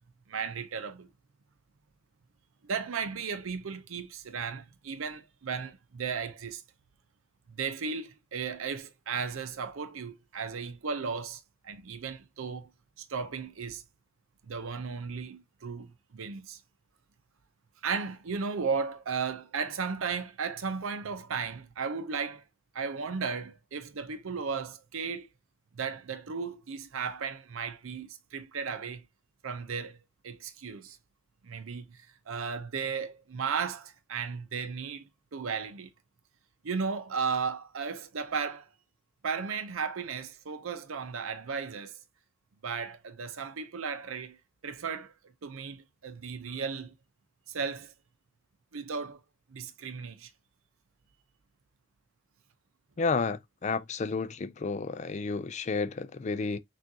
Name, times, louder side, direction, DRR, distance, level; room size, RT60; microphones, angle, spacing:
voice 1, 0.3-1.1 2.6-6.6 7.5-12.7 13.0-13.8 14.5-16.6 17.8-22.4 22.7-25.3 25.8-29.0 29.4-30.0 30.2-31.0 31.4-35.1 35.3-35.9 36.6-38.7 39.2-42.0 42.6-44.4 44.6-45.1 45.4-46.9 47.5-47.9 48.7-49.2 49.5-50.3, right 5 dB, 85° right, 0.6 m, -35 dB
voice 2, 53.0-56.6, left 4 dB, 35° left, 0.3 m, -31 dB
6.0 x 2.4 x 2.7 m
head